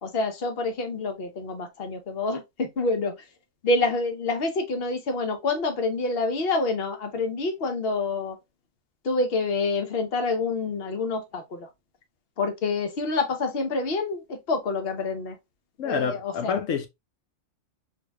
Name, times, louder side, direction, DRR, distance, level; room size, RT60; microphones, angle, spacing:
voice 1, 0.0-3.2 3.6-8.4 9.0-11.7 12.4-15.4 15.8-16.6, left 3 dB, 55° left, 1.0 m, -27 dB
voice 2, 15.8-16.9, left 6 dB, 80° left, 1.1 m, -27 dB
4.2 x 3.2 x 2.3 m
omnidirectional pair, 1.3 m